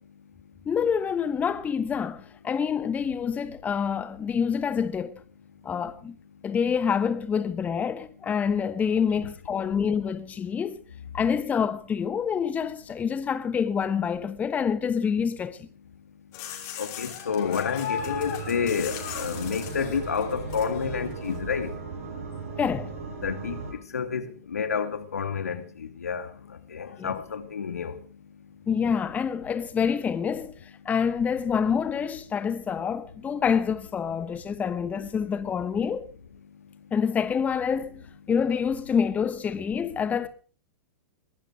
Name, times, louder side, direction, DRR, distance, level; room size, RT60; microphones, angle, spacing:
voice 1, 0.7-5.2 5.6-6.2 6.4-10.8 11.1-15.7 22.6-22.9 27.0-27.2 28.7-30.5 30.8-36.1 36.9-38.0 38.3-40.3, left 7 dB, 20° left, 1.0 m, -27 dB
sound 1, 16.3-21.4, left 8 dB, 45° left, 5.6 m, -37 dB
voice 2, 16.8-21.7 23.2-23.6 23.9-24.2 24.5-26.3 26.7-27.9, left 6 dB, 80° left, 2.5 m, -29 dB
sound 2, 17.9-23.7, right 4 dB, 65° right, 8.0 m, -37 dB
21.5 x 13.0 x 4.8 m
hypercardioid pair, 110°, 8 cm